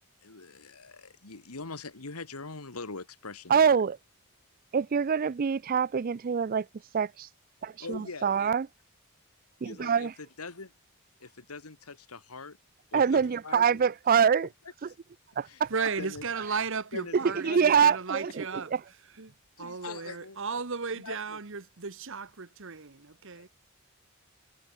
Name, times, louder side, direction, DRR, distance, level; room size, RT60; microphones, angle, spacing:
voice 1, 0.2-3.8 7.8-8.5 9.6-10.1 10.4-10.7 11.2-12.6 12.9-13.8 15.5-15.6 16.0-16.2 16.9-17.8 18.3-18.4 19.6-20.4 21.0-21.4 23.4-23.5, left 3 dB, 85° left, 1.9 m, -42 dB
voice 2, 3.5-4.0 4.7-6.7 6.9-7.3 7.6-8.7 9.6-10.1 12.9-14.5 14.8-14.9 15.4-15.7 17.4-18.4, right 7 dB, 40° right, 0.4 m, -25 dB
voice 3, 15.7-18.7 19.1-23.5, right 5 dB, 60° right, 1.2 m, -35 dB
head